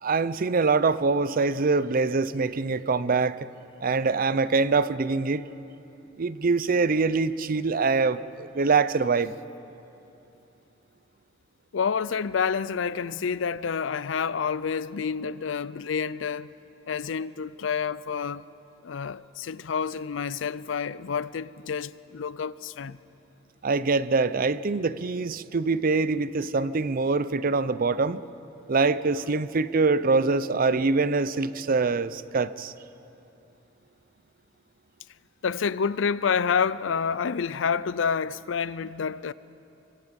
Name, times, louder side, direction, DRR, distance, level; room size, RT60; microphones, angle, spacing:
voice 1, 0.0-3.4 3.8-5.4 6.2-9.3 23.6-28.2 28.7-32.7, right 4 dB, 50° right, 0.6 m, -24 dB
voice 2, 11.7-16.5 16.9-18.4 18.8-23.0 35.4-39.3, left 6 dB, 85° left, 0.5 m, -28 dB
24.5 x 24.0 x 5.3 m
head